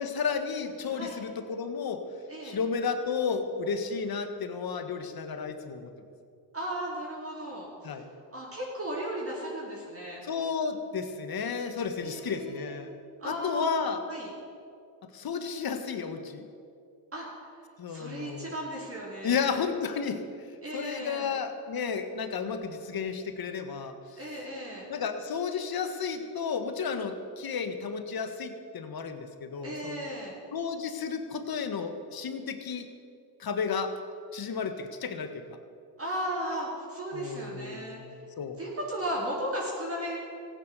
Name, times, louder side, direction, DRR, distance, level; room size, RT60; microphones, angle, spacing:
voice 1, 0.0-2.0 2.4-5.9 7.8-8.0 10.2-12.9 13.2-14.0 15.1-16.5 17.8-18.5 19.2-20.2 20.7-24.2 24.9-30.0 30.5-32.9 33.4-33.9 34.3-35.6 37.1-38.6, left 6 dB, 50° left, 8 dB, 1.7 m, -32 dB
voice 2, 6.5-8.0 8.3-10.2 12.0-12.8 13.2-13.8 14.1-14.3 17.1-17.3 17.9-19.5 20.6-21.3 24.2-24.9 29.6-30.4 36.0-38.0 38.6-40.2, right 1 dB, 30° right, -4 dB, 4.8 m, -35 dB
15.5 x 9.4 x 8.3 m, 2.4 s
supercardioid pair, 75°, 48 cm